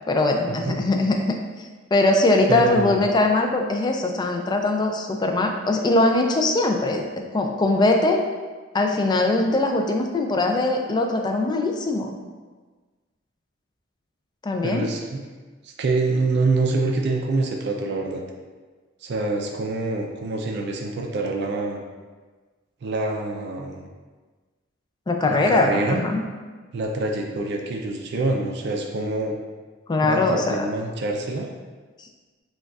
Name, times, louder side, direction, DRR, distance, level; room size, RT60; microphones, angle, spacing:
voice 1, 0.1-8.2 8.7-12.2 14.4-14.9 25.1-26.2 29.9-30.7, left 2 dB, 20° left, 3 dB, 0.3 m, -21 dB
voice 2, 2.5-3.0 14.6-15.2 15.6-18.2 19.0-21.8 22.8-23.9 25.3-26.0 26.7-29.4 30.0-31.5, right 3 dB, 55° right, 1 dB, 0.4 m, -25 dB
6.2 x 2.3 x 2.3 m, 1.4 s
head